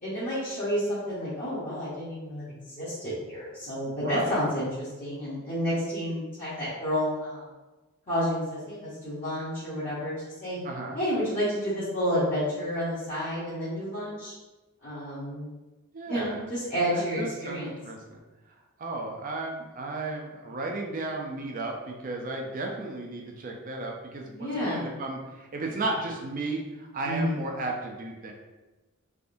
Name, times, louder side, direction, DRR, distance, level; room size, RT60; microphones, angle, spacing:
voice 1, 0.0-7.4 8.1-10.1 10.4-10.6 10.9-14.3 14.8-15.5 16.1-17.7 24.2-24.9 27.0-27.4, equal, 35° left, -12 dB, 1.0 m, -30 dB
voice 2, 4.0-4.4 10.6-11.0 15.9-16.4 16.9-18.2 18.8-28.3, right 2 dB, 40° right, 1 dB, 0.5 m, -34 dB
3.5 x 2.6 x 2.5 m, 1.1 s
head